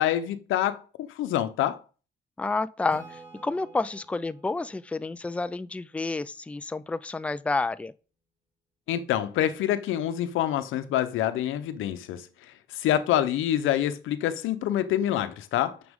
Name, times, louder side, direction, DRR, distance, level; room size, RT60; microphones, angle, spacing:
voice 1, 0.0-1.8 8.9-12.3 12.7-15.8, left 11 dB, 90° left, 0.8 m, -26 dB
voice 2, 2.4-7.9, left 3 dB, 5° left, 0.4 m, -30 dB
Acoustic guitar / Strum, 2.9-6.5, right 2 dB, 25° right, 5.0 m, -51 dB
9.5 x 6.2 x 3.7 m
cardioid pair, 90°, 20 cm